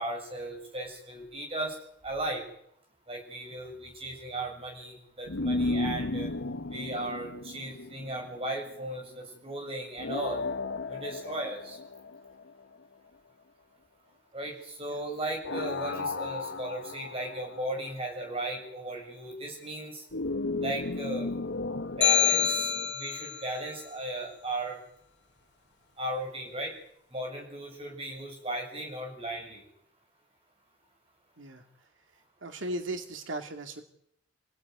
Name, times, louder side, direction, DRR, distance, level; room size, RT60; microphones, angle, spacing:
voice 1, 0.0-1.7 2.0-2.4 3.1-6.3 6.7-10.4 10.9-11.8 14.3-20.0 20.6-21.3 22.0-24.8 26.0-26.7 27.1-29.6, right 1 dB, 30° right, 1 dB, 7.6 m, -36 dB
sound 1, 5.3-8.6 10.0-12.8 15.4-18.1 20.1-22.9, left 2 dB, 85° left, 1.1 m, -34 dB
sound 2, 22.0-23.4, left 7 dB, 60° left, 3.0 m, -25 dB
voice 2, 32.4-33.8, right 1 dB, 90° right, 6 dB, 2.3 m, -36 dB
26.5 x 17.0 x 9.7 m, 0.72 s
head